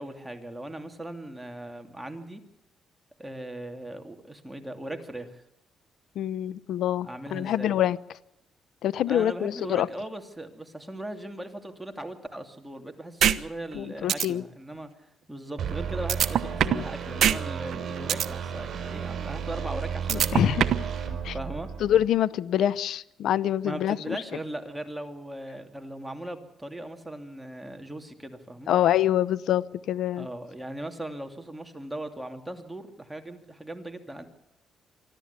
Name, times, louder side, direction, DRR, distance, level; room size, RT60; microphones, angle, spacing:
voice 1, 0.0-2.4 3.2-5.4 7.0-7.8 9.1-14.9 15.3-20.4 21.3-21.7 23.6-28.7 30.2-34.3, right 1 dB, 5° right, 5 dB, 2.7 m, -38 dB
voice 2, 6.2-8.0 8.8-9.9 13.7-14.4 16.6-16.8 20.1-20.7 21.2-21.3 21.8-24.2 28.7-30.3, left 11 dB, 75° left, 19 dB, 0.7 m, -25 dB
sound 1, 13.2-13.4 13.7-13.8 14.1-14.3 16.1-16.9 17.2-17.4 17.7-18.3 20.1-20.9, right 10 dB, 70° right, 1.1 m, -21 dB
sound 2, 15.6-22.1, right 7 dB, 50° right, 5.3 m, -33 dB
24.5 x 14.0 x 8.3 m, 0.82 s
cardioid pair, 90°, 0 cm